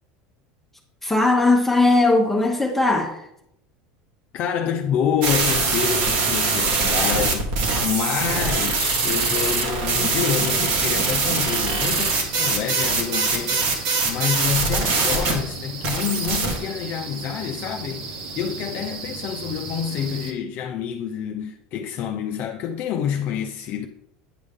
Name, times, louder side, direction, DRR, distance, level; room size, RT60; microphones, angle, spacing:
voice 1, 1.0-3.2, left 2 dB, 5° left, 0.9 m, -18 dB
voice 2, 4.3-7.5 7.8-23.9, left 8 dB, 50° left, 0.5 m, -27 dB
sound 1, 5.2-15.3 15.8-16.6, right 4 dB, 70° right, 1.7 m, -22 dB
sound 2, 10.3-20.3, right 4 dB, 90° right, 1.2 m, -36 dB
9.0 x 5.3 x 3.6 m
supercardioid pair, 125°, 4 cm